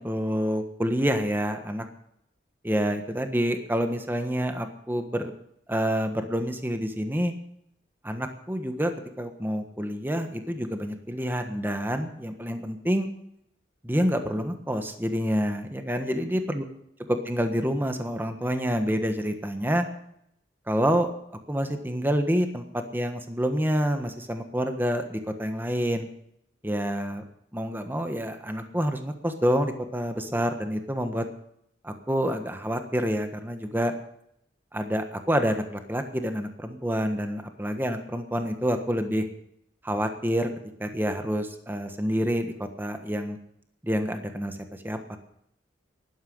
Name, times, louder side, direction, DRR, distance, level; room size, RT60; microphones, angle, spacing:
voice 1, 0.0-1.8 2.6-5.3 5.7-7.3 8.0-8.9 9.2-13.1 13.8-16.6 17.1-19.9 20.7-21.1 21.5-26.1 26.6-27.2 27.5-31.3 31.8-33.9 34.7-39.2 39.8-40.5 40.8-43.4 43.8-44.6 44.8-45.2, equal, 10° right, 7 dB, 1.4 m, -27 dB
12.0 x 11.5 x 7.8 m, 0.74 s
head